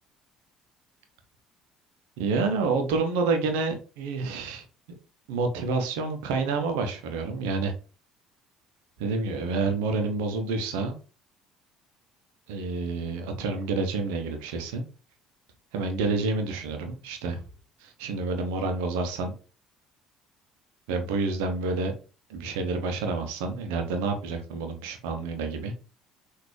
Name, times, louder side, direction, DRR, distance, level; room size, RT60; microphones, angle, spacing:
voice 1, 2.2-4.6 5.3-7.7 9.0-11.0 12.5-14.8 15.7-17.4 17.8-19.3 20.9-21.9 22.3-25.7, right 3 dB, 65° right, 5 dB, 0.9 m, -28 dB
5.9 x 2.8 x 3.1 m, 0.36 s
figure-of-eight pair, 55°, 0 cm